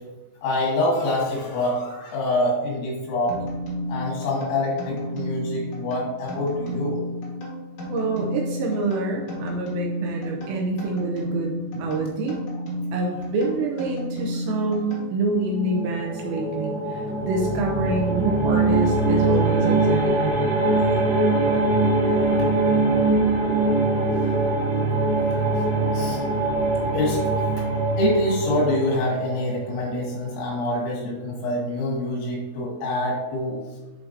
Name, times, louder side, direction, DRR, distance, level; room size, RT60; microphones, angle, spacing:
voice 1, 0.4-3.4 3.9-7.0 25.9-26.2 26.9-27.2 28.0-33.6, left 1 dB, 85° left, -4 dB, 4.6 m, -25 dB
sound 1, 3.3-15.5, left 1 dB, 55° left, 1.8 m, -32 dB
voice 2, 7.9-12.4 12.9-20.4, right 3 dB, 80° right, 0 dB, 2.7 m, -27 dB
sound 2, 15.2-29.9, right 2 dB, 60° right, 3.3 m, -22 dB
10.5 x 4.7 x 2.7 m, 1.1 s
omnidirectional pair, 5.6 m